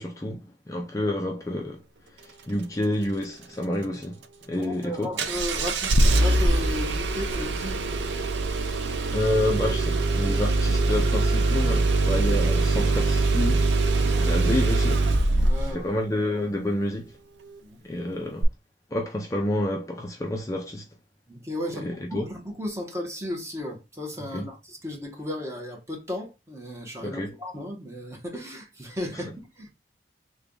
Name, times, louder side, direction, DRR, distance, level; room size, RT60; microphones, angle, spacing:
voice 1, 0.0-1.8 2.2-4.2 4.5-5.1 8.6-8.8 9.1-13.7 14.2-15.1 15.6-17.1 17.8-18.5 18.9-20.8 21.7-22.3 24.3-24.5 27.0-27.3 29.1-29.2, left 1 dB, 20° left, 0.5 m, -29 dB
voice 2, 4.5-7.9 13.9-14.3 15.4-15.9 17.6-17.8 21.3-29.7, left 1 dB, 15° right, 1.0 m, -35 dB
Engine starting, 5.2-15.8 18.4-18.5, right 2 dB, 85° right, 0.6 m, -23 dB
3.4 x 2.3 x 3.7 m
head